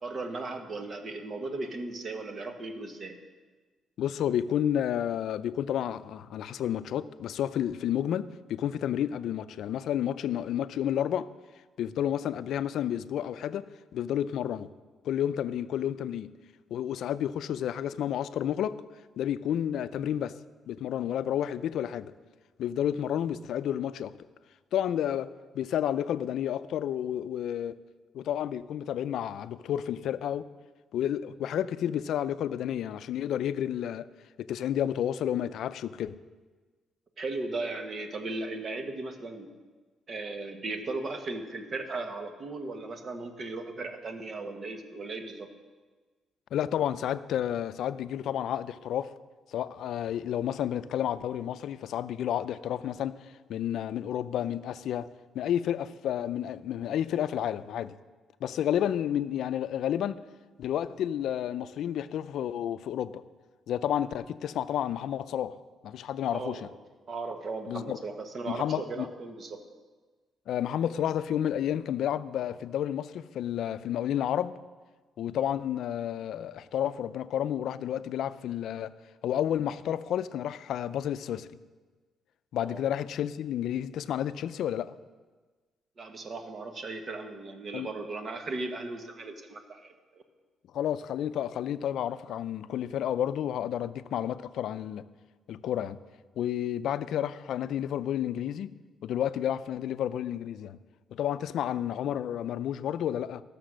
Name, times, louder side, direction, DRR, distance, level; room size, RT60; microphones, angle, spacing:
voice 1, 0.0-3.2 37.2-39.5 40.1-45.5 66.3-66.7 67.1-69.6 82.6-82.8 86.0-90.2, right 3 dB, 45° right, 1.4 m, -37 dB
voice 2, 4.0-11.3 11.8-13.7 13.9-14.7 15.0-16.3 16.7-18.8 19.2-20.4 20.7-22.1 22.6-24.1 24.7-27.8 28.1-30.4 30.9-34.1 34.4-36.1 46.5-49.1 49.5-53.2 53.5-55.1 55.3-57.9 58.4-60.2 60.6-63.2 63.7-65.5 65.8-66.7 67.7-68.0 68.5-69.1 70.5-74.5 75.2-78.9 79.2-81.5 82.5-84.9 87.7-87.9 90.7-95.0 95.5-96.0 96.4-98.7 99.0-100.8 101.1-103.4, left 10 dB, 75° left, 0.4 m, -31 dB
13.5 x 6.9 x 6.3 m
cardioid pair, 90°, 0 cm